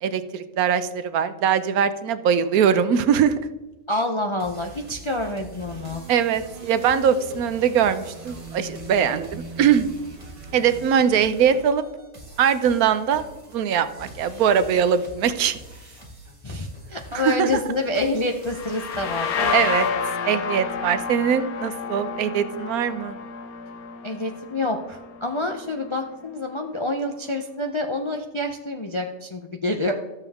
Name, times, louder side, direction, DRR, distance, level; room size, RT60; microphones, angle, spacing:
voice 1, 0.0-3.4 6.1-9.9 10.5-11.8 12.4-13.2 13.5-15.6 17.1-17.5 19.5-19.9 20.2-23.2, right 8 dB, 80° right, 12 dB, 1.1 m, -21 dB
voice 2, 3.9-6.0 16.4-19.5 24.0-29.9, left 2 dB, 45° left, 2 dB, 0.4 m, -27 dB
sound 1, 4.4-19.9, right 1 dB, 20° right, 1.6 m, -45 dB
sound 2, 5.6-10.9, right 3 dB, 35° right, 0.6 m, -41 dB
sound 3, 18.5-26.0, left 6 dB, 80° left, 1.4 m, -30 dB
13.0 x 7.0 x 3.5 m, 1.1 s
omnidirectional pair, 1.5 m